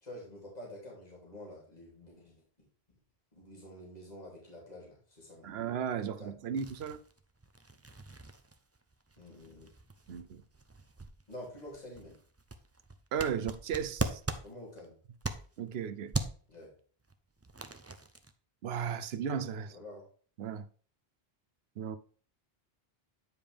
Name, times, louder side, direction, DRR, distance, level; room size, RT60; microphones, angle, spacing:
voice 1, 0.0-2.4 3.3-5.6 6.2-6.3 9.2-9.7 11.3-12.2 14.4-14.9 16.5-16.7 19.6-20.0, left 1 dB, 40° left, 3.0 m, -48 dB
voice 2, 5.4-7.0 10.1-10.4 13.1-14.2 15.6-16.1 18.6-19.8 20.4-20.6 21.8-22.0, right 7 dB, 75° right, 0.9 m, -35 dB
sound 1, 6.5-15.7 16.1-16.5 17.1-18.3, right 2 dB, 20° right, 0.5 m, -40 dB
9.4 x 5.1 x 3.4 m
omnidirectional pair, 1.1 m